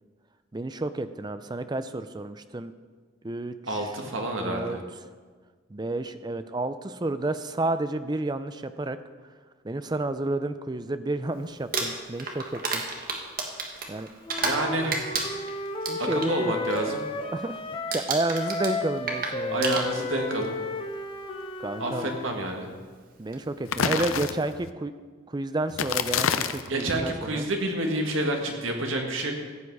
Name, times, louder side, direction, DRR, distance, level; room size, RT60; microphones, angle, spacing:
voice 1, 0.5-2.7 3.2-3.8 4.4-4.8 5.7-9.0 9.6-12.8 13.9-14.1 15.9-16.5 17.3-17.6 17.9-19.7 21.6-22.1 23.2-24.9 25.3-27.4, right 2 dB, 20° right, 11 dB, 0.4 m, -30 dB
voice 2, 3.7-4.8 14.4-15.1 16.0-17.0 19.5-20.6 21.8-22.7 26.6-29.3, right 1 dB, 70° right, 2 dB, 1.7 m, -29 dB
Crumpling crinkling, 11.6-14.6 14.9-16.3 16.7-17.0 17.3-17.6 17.9-20.3 21.2-21.3 23.3-23.4 23.8-24.1, right 3 dB, 45° right, 1.4 m, -31 dB
Wind instrument woodwind instrument, 14.2-18.1 18.3-22.3, left 2 dB, 25° left, 0.7 m, -33 dB
sound 1, 23.7-24.7 25.7-26.7, left 7 dB, 85° left, 0.6 m, -27 dB
14.5 x 8.6 x 4.7 m, 1.5 s
head